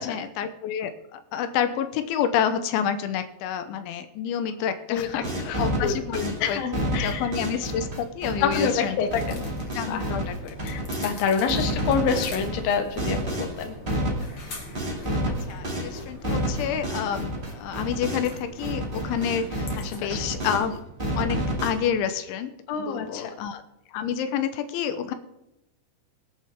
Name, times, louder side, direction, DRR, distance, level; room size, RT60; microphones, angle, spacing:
voice 1, 0.1-5.3 5.6-6.6 6.9-9.0 9.7-10.6 11.5-11.6 15.3-20.8 21.1-23.6 23.9-25.1, left 8 dB, 90° left, 9 dB, 3.2 m, -29 dB
voice 2, 4.9-6.0 6.4-7.3 8.4-9.5 9.8-10.1 10.6-13.8 19.8-20.3 22.7-23.3, left 6 dB, 60° left, 5 dB, 2.7 m, -27 dB
sound 1, 5.0-11.1 11.5-18.4 18.6-20.7 21.0-21.7, right 1 dB, 25° right, 1.1 m, -30 dB
sound 2, 8.9-20.7, left 2 dB, 40° left, 1.9 m, -43 dB
24.0 x 8.4 x 3.5 m, 0.88 s
omnidirectional pair, 5.4 m